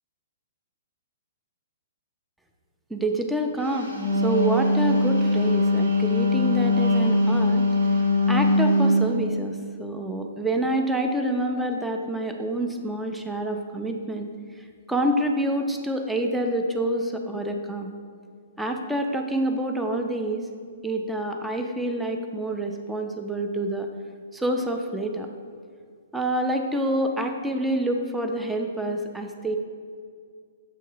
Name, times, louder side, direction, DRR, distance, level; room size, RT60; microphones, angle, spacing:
voice 1, 2.9-3.9 4.2-7.6 8.3-14.3 14.6-17.9 18.6-20.5 20.8-23.9 24.3-25.3 26.1-29.6, right 1 dB, 5° right, 3 dB, 0.5 m, -27 dB
Wind instrument woodwind instrument, 3.8-9.1, left 1 dB, 80° right, 1.6 m, -21 dB
7.3 x 2.7 x 5.5 m, 2.1 s
hypercardioid pair, 125°, 0 cm